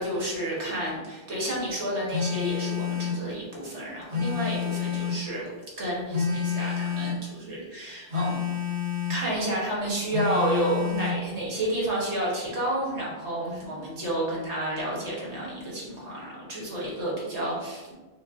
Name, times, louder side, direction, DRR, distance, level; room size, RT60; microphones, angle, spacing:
voice 1, 0.0-5.5 5.8-8.5 9.1-17.9, right 1 dB, 90° right, -4 dB, 1.4 m, -30 dB
Telephone, 2.1-3.2 4.1-5.3 6.1-7.3 8.1-9.2 10.1-11.2, left 7 dB, 70° right, 1.2 m, -29 dB
5.2 x 2.2 x 2.5 m, 1.2 s
omnidirectional pair, 1.1 m